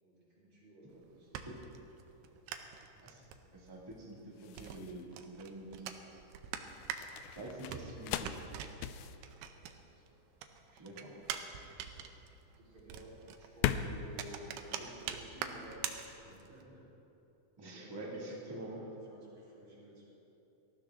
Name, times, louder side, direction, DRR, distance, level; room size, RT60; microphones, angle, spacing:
voice 1, 0.0-1.5 7.5-8.6 9.5-10.0 11.0-11.1 12.5-15.9 16.2-16.9 17.7-20.0, right 1 dB, 35° right, -7 dB, 4.6 m, -54 dB
sound 1, 0.9-10.1 10.4-16.6, right 9 dB, 80° right, 2.4 m, -45 dB
sound 2, 1.6-15.5, left 10 dB, 85° left, 1.8 m, -42 dB
voice 2, 3.5-5.9 7.3-8.4 10.7-11.1 17.6-18.8, right 1 dB, 10° right, -5 dB, 1.0 m, -46 dB
18.5 x 13.5 x 3.6 m, 2.9 s
omnidirectional pair, 4.0 m